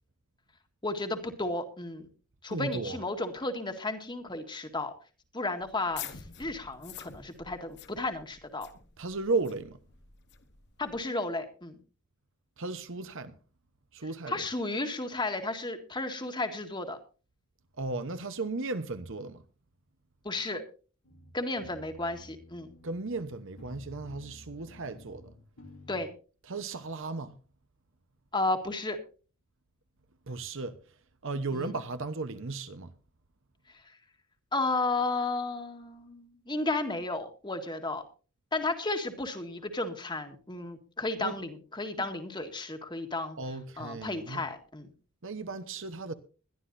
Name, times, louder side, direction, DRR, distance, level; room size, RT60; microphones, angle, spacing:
voice 1, 0.8-2.1 2.4-4.9 5.3-8.7 10.8-11.7 14.3-17.0 20.2-20.6 21.3-22.7 25.9-26.1 28.3-29.0 31.5-31.7 34.5-38.0 38.5-43.4 43.8-44.9, left 2 dB, 20° left, 1.7 m, -33 dB
voice 2, 2.5-3.0 9.0-9.8 12.6-13.4 13.9-14.4 17.8-19.4 22.8-25.3 26.5-27.4 30.3-30.8 31.2-32.9 41.2-41.4 41.9-42.0 43.4-44.5 45.2-46.1, right 3 dB, 60° right, 1.0 m, -35 dB
sound 1, 5.6-11.0, left 8 dB, 50° left, 1.2 m, -47 dB
sound 2, 21.0-26.1, left 1 dB, 85° left, 3.0 m, -52 dB
21.5 x 12.0 x 2.7 m
head